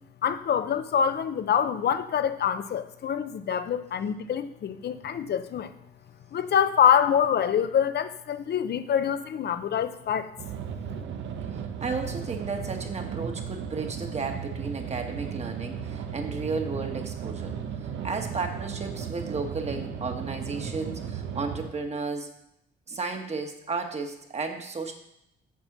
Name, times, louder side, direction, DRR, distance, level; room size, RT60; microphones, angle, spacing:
voice 1, 0.2-5.7 6.3-10.3, left 8 dB, 55° left, 11 dB, 0.8 m, -25 dB
sound 1, 10.4-21.7, right 7 dB, 75° right, 0.9 m, -35 dB
voice 2, 11.8-17.5 18.0-22.3 22.9-24.9, right 4 dB, 35° right, 4 dB, 1.5 m, -33 dB
7.6 x 5.5 x 7.3 m, 0.79 s
cardioid pair, 90°, 20 cm